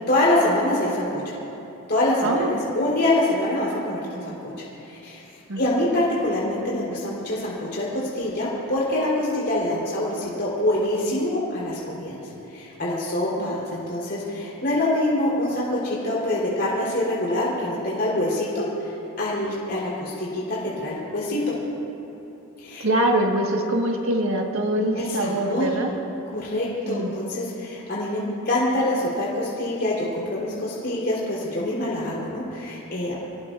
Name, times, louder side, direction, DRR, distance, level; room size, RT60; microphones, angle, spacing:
voice 1, 0.1-1.2 1.9-4.3 4.8-5.2 5.6-12.2 12.5-18.9 19.2-21.5 22.6-22.9 25.0-25.7 26.3-33.2, left 1 dB, 50° left, -7 dB, 3.9 m, -25 dB
voice 2, 2.2-2.6 5.5-5.8 13.4-13.5 22.8-25.9 26.8-27.1, right 1 dB, 70° right, 1 dB, 1.7 m, -24 dB
28.0 x 18.0 x 2.6 m, 3.0 s
head